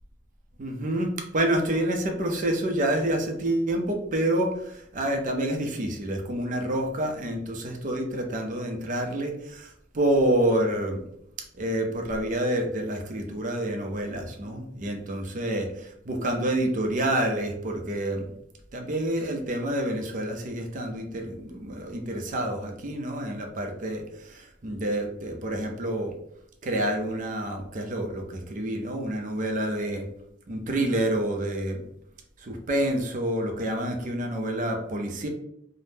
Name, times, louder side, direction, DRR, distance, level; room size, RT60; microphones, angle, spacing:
voice 1, 0.6-11.0 11.6-18.3 18.7-26.1 26.6-30.1 30.5-31.9 32.4-35.3, right 1 dB, 45° right, 3 dB, 0.5 m, -28 dB
3.4 x 2.0 x 2.7 m, 0.74 s
head